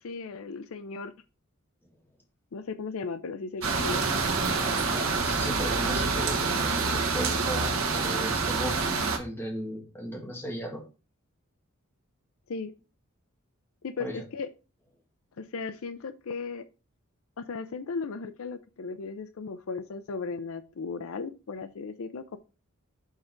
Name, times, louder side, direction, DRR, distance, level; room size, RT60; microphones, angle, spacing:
voice 1, 0.0-1.1 2.5-4.0 12.5-12.7 13.8-14.5 15.4-16.6 17.4-22.4, left 4 dB, 70° left, 11 dB, 0.5 m, -36 dB
sound 1, 3.6-9.2, right 4 dB, 65° right, 1.2 m, -27 dB
voice 2, 4.6-10.8 14.0-14.2, equal, 10° left, 0 dB, 1.8 m, -36 dB
6.4 x 3.8 x 4.5 m, 0.32 s
head